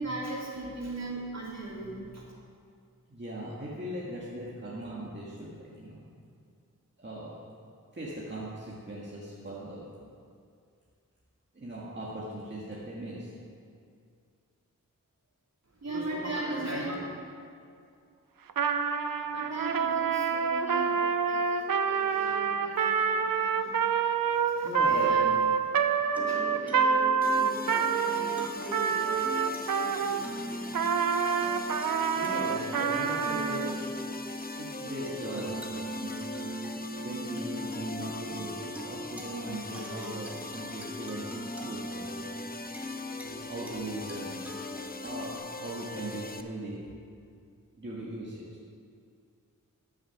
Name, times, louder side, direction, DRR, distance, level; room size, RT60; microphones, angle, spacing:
voice 1, 0.0-2.3 15.8-16.9 19.3-25.4 26.1-30.9 31.3-31.5, right 2 dB, 50° right, -4 dB, 3.0 m, -39 dB
voice 2, 3.1-6.1 7.0-7.3 7.9-9.9 11.5-13.3 24.6-25.2 32.2-33.8 34.6-36.3 37.0-42.4 43.2-44.4 45.0-46.9 47.8-48.4, right 1 dB, 35° right, -7 dB, 1.9 m, -39 dB
Trumpet, 18.5-30.3 30.7-33.7, right 6 dB, 85° right, 0.6 m, -27 dB
sound 1, 25.6-45.4, left 1 dB, 5° right, 1.7 m, -41 dB
sound 2, 27.2-46.4, left 2 dB, 25° left, 0.7 m, -42 dB
13.5 x 7.2 x 6.0 m, 2.3 s
wide cardioid pair, 65°, 33 cm